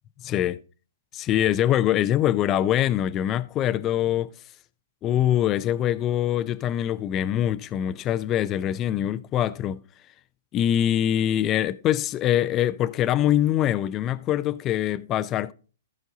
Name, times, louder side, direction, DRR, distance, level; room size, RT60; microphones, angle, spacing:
voice 1, 0.2-0.6 1.1-4.3 5.0-9.8 10.5-15.5, left 11 dB, 25° left, 0.5 m, -24 dB
14.0 x 5.1 x 3.9 m
hypercardioid pair, 135°, 0 cm